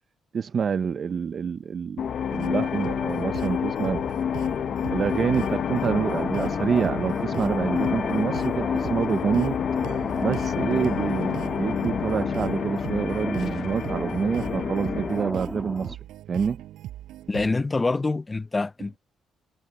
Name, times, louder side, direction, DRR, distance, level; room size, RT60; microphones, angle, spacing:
voice 1, 0.3-2.0 2.3-4.1 4.9-9.6 10.2-16.0 16.3-16.6, right 6 dB, 50° right, 0.6 m, -27 dB
sound 1, 2.0-15.3, left 8 dB, 60° left, 0.9 m, -28 dB
sound 2, 2.4-17.5, right 13 dB, 85° right, 5.7 m, -40 dB
sound 3, 5.7-16.0, left 1 dB, 5° left, 2.0 m, -35 dB
voice 2, 17.3-19.0, left 3 dB, 25° left, 0.6 m, -25 dB
cardioid pair, 90°, 0 cm